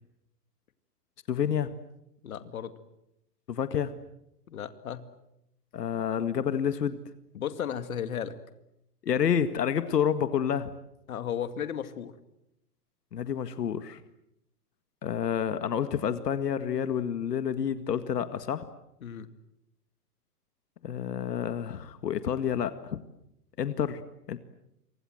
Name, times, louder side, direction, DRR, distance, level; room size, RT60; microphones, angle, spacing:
voice 1, 1.3-1.7 3.5-3.9 5.7-7.0 9.0-10.7 13.1-14.0 15.0-18.7 20.8-23.0 23.6-24.0 24.3-24.4, left 8 dB, 85° left, 11 dB, 2.0 m, -29 dB
voice 2, 2.2-2.7 4.5-5.0 7.3-8.3 11.1-12.2 19.0-19.3, left 9 dB, 60° left, 10 dB, 2.4 m, -34 dB
29.0 x 25.5 x 7.9 m, 0.82 s
hypercardioid pair, 180°, 47 cm